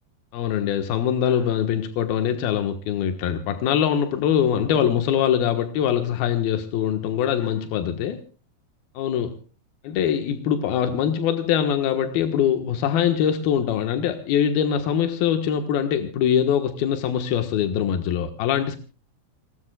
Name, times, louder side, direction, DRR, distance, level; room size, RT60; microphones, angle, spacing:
voice 1, 0.3-8.2 8.9-9.4 9.8-18.8, left 9 dB, 85° left, 3.3 m, -23 dB
27.5 x 20.0 x 2.3 m
omnidirectional pair, 4.2 m